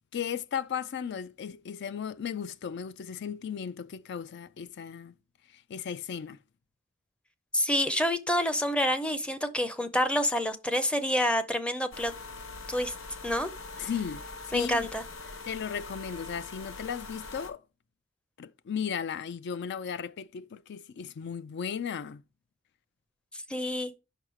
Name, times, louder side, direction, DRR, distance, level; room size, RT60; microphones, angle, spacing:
voice 1, 0.1-5.1 5.5-6.4 13.8-14.9 15.5-17.6 18.4-22.2, left 7 dB, 55° left, 0.4 m, -36 dB
voice 2, 7.5-12.1 12.7-12.9 13.2-13.5 13.8-13.9 14.5-15.0 23.3-23.9, equal, 5° left, 0.5 m, -28 dB
sound 1, 11.9-17.5, left 3 dB, 85° left, 0.9 m, -43 dB
5.5 x 4.7 x 4.8 m
head